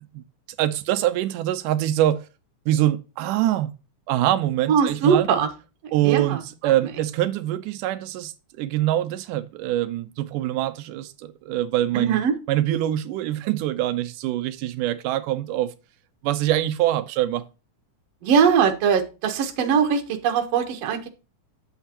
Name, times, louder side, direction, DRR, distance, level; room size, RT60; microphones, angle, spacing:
voice 1, 0.6-2.3 2.7-3.7 4.1-5.3 5.9-8.3 8.6-12.2 12.5-15.7 16.2-17.5, right 13 dB, 90° right, 2.2 m, -24 dB
voice 2, 4.7-5.5 6.0-6.7 11.9-12.3 18.2-21.1, right 7 dB, 60° right, 2.1 m, -21 dB
8.9 x 8.0 x 2.8 m
omnidirectional pair, 3.6 m